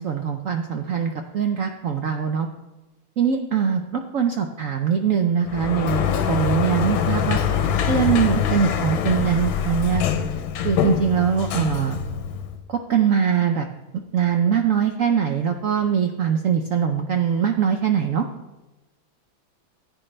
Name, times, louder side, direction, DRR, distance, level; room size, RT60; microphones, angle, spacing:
voice 1, 0.0-2.5 3.2-6.0 6.3-7.4 7.9-10.1 10.6-12.0 12.7-13.7 14.1-18.3, right 7 dB, 85° right, 5 dB, 0.7 m, -22 dB
Sliding door, 5.5-12.6, left 8 dB, 75° left, 1.5 m, -24 dB
15.0 x 8.8 x 3.3 m, 1.0 s
omnidirectional pair, 2.2 m